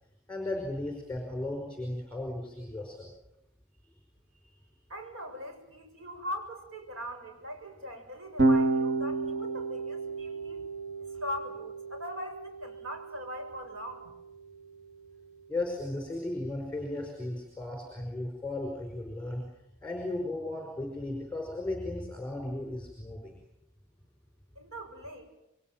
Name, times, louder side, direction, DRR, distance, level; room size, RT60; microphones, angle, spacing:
voice 1, 0.3-3.1 15.5-19.4 19.8-23.4, left 2 dB, 5° left, 2 dB, 5.3 m, -35 dB
voice 2, 4.9-10.6 11.0-14.1 24.6-25.2, equal, 70° right, 4 dB, 7.2 m, -41 dB
Electric guitar / Bass guitar, 8.4-14.8, right 2 dB, 55° right, 3.3 m, -31 dB
29.0 x 23.0 x 7.6 m, 0.85 s
head